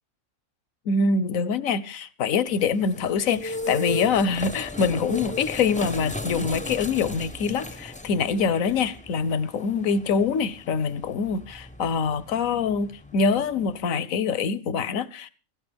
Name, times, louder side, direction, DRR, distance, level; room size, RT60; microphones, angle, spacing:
voice 1, 0.9-15.3, left 5 dB, 75° left, 1.3 m, -25 dB
sound 1, 2.5-13.9, left 2 dB, 5° left, 0.8 m, -37 dB
17.0 x 15.5 x 3.4 m
omnidirectional pair, 1.4 m